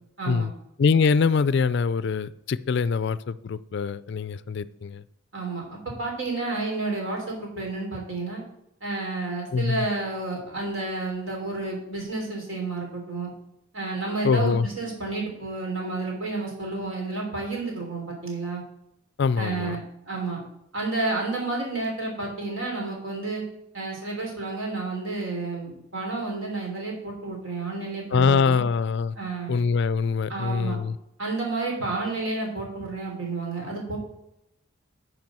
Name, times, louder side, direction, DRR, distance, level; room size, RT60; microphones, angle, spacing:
voice 1, 0.2-0.5 5.3-5.7 6.0-8.4 8.8-13.3 13.7-18.6 19.4-20.4 20.7-23.4 23.7-28.6 29.1-29.6 30.3-30.8 31.2-34.0, right 3 dB, 70° right, -1 dB, 3.3 m, -30 dB
voice 2, 0.8-5.0 9.5-9.9 14.2-14.7 19.2-19.8 28.1-29.2 29.5-31.0, left 5 dB, 55° left, 16 dB, 0.3 m, -23 dB
9.4 x 4.9 x 6.1 m, 0.82 s
head